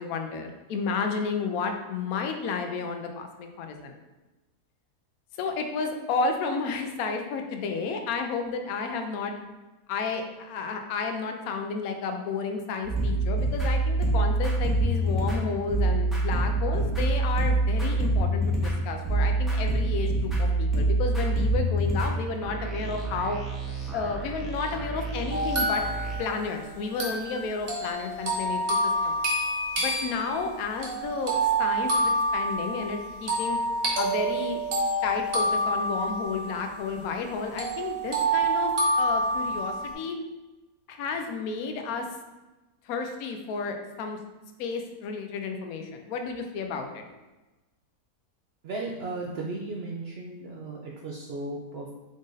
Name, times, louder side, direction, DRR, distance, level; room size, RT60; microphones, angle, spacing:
voice 1, 0.0-4.0 5.4-9.3 9.9-23.4 23.9-25.8 26.2-29.2 29.8-33.6 34.0-34.6 35.0-38.7 39.0-40.2 40.9-42.1 42.9-44.2 44.6-47.0, left 4 dB, 70° left, 5 dB, 1.0 m, -32 dB
sound 1, 12.8-26.2, right 2 dB, ahead, 0.5 m, -26 dB
sound 2, 25.3-37.3 37.6-39.9, right 1 dB, 45° right, 0.9 m, -28 dB
voice 2, 48.6-51.9, right 2 dB, 85° right, -2 dB, 0.5 m, -35 dB
5.1 x 2.6 x 3.8 m, 1.1 s
omnidirectional pair, 1.7 m